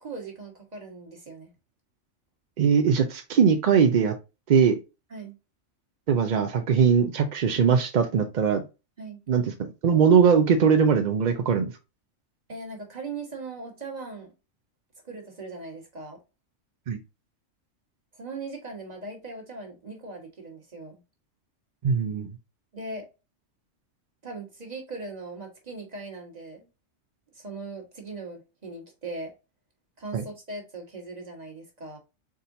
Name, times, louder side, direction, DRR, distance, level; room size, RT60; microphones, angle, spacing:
voice 1, 0.0-1.5 5.1-5.4 9.0-9.2 12.5-14.3 15.0-16.2 18.1-21.0 22.7-23.1 24.2-26.7 27.3-29.3 30.0-32.0, right 3 dB, 35° right, 1 dB, 1.4 m, -39 dB
voice 2, 2.6-4.1 4.5-4.8 6.1-8.6 9.3-11.7 16.9-17.0 21.8-22.3 30.1-30.2, right 6 dB, 60° right, 5 dB, 0.5 m, -21 dB
4.2 x 3.7 x 2.6 m, 0.27 s
omnidirectional pair, 1.3 m